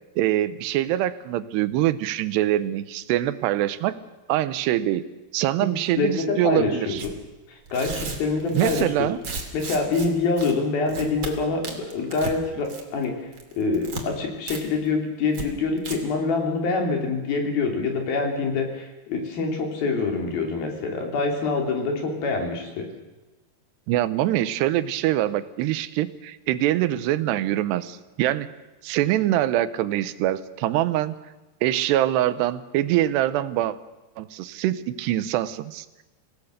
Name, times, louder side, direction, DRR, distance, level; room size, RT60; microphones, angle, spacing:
voice 1, 0.2-4.0 4.3-5.1 5.3-7.0 8.5-9.2 23.9-28.5 28.8-31.2 31.6-33.8 34.2-35.9, right 13 dB, 90° right, 14 dB, 3.0 m, -24 dB
voice 2, 6.0-7.0 7.5-8.9 9.5-13.3 13.5-22.9, left 4 dB, 65° left, 2 dB, 5.1 m, -25 dB
Tearing, 7.0-7.1 7.7-10.1 10.4-10.5 10.9-11.3 11.6-12.4 12.7-13.0 13.3-14.0 14.5-14.6 14.9-15.0 15.3-15.5 15.8-16.0, right 4 dB, 35° right, 3.0 m, -34 dB
26.0 x 17.5 x 6.6 m, 1.1 s
omnidirectional pair, 4.7 m